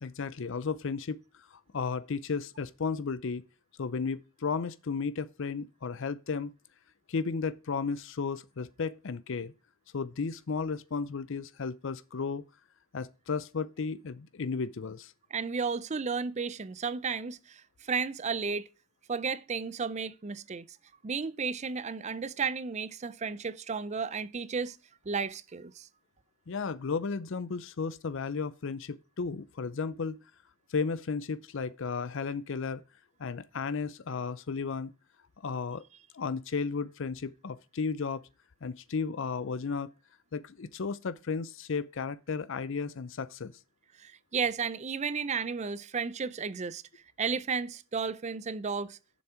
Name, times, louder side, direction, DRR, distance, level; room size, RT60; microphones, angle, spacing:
voice 1, 0.0-3.4 3.8-6.5 7.1-9.5 9.9-12.4 12.9-15.1 26.5-30.2 30.7-32.8 33.2-34.9 35.4-35.8 36.1-38.2 38.6-39.9 40.3-43.5, left 5 dB, 60° left, 0.5 m, -34 dB
voice 2, 15.3-18.7 19.1-20.7 21.0-24.8 25.1-25.9 44.0-46.8 47.2-49.0, right 5 dB, 30° right, 0.5 m, -33 dB
7.2 x 7.1 x 4.9 m
head